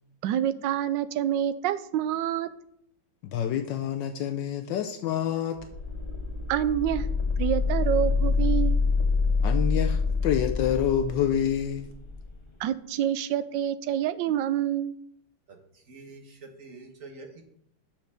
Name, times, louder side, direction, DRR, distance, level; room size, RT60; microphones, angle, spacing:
voice 1, 0.2-2.5 6.5-7.1 7.4-8.8 12.6-14.9, right 11 dB, 75° right, 13 dB, 1.2 m, -27 dB
voice 2, 3.3-5.6 9.4-11.9, left 9 dB, 75° left, 8 dB, 1.2 m, -27 dB
sound 1, 5.6-12.2, left 4 dB, 25° left, 0.6 m, -26 dB
voice 3, 15.5-17.4, right 3 dB, 45° right, 3 dB, 1.6 m, -46 dB
7.2 x 6.0 x 6.5 m, 0.72 s
omnidirectional pair, 2.1 m